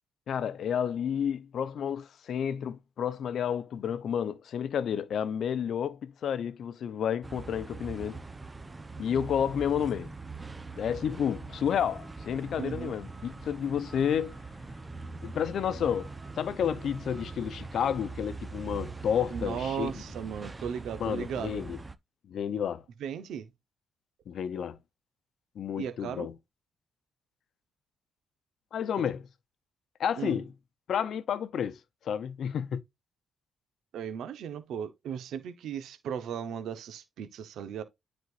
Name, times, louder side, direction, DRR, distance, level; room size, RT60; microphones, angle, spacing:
voice 1, 0.3-8.2 9.0-10.1 10.8-14.4 15.2-16.1 16.4-19.9 21.0-21.8 22.3-22.8 24.3-24.8 25.6-26.3 28.7-29.3 30.0-30.5 30.9-31.8 32.0-32.8, left 8 dB, 65° left, 0.7 m, -31 dB
sound 1, 7.2-22.0, right 3 dB, 20° right, 0.8 m, -42 dB
voice 2, 12.5-12.9 19.3-21.7 23.0-23.5 25.8-26.3 30.2-30.4 33.9-37.8, right 8 dB, 80° right, 1.0 m, -36 dB
9.6 x 4.3 x 2.5 m
cardioid pair, 80°, 0 cm